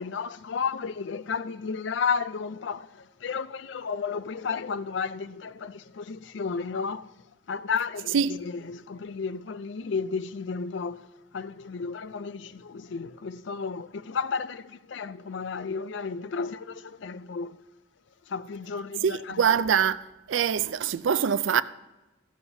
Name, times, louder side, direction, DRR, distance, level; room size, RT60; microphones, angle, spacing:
voice 1, 0.0-7.1 7.5-17.6 18.3-19.5, left 5 dB, 70° left, 0.4 m, -33 dB
voice 2, 19.0-20.0 20.3-21.6, right 7 dB, 80° right, 0.4 m, -24 dB
15.0 x 12.5 x 2.7 m
head